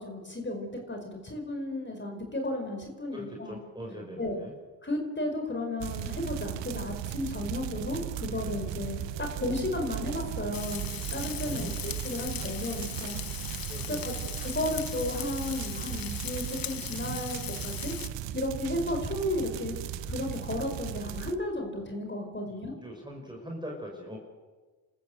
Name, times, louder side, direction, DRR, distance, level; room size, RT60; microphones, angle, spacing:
voice 1, 0.0-3.6 4.2-4.4 4.8-13.2 13.5-13.6 13.9-14.1 14.4-17.9 18.3-19.7 20.1-22.7, left 1 dB, 25° left, 3 dB, 5.0 m, -34 dB
voice 2, 3.1-4.5 11.4-11.7 13.7-14.1 22.4-24.2, equal, 10° right, 0 dB, 5.8 m, -41 dB
sound 1, 5.8-21.3, right 12 dB, 85° right, 1.1 m, -37 dB
Frying (food), 10.5-18.1, left 10 dB, 55° left, 1.0 m, -39 dB
28.0 x 13.5 x 8.0 m, 1.4 s
supercardioid pair, 50°, 43 cm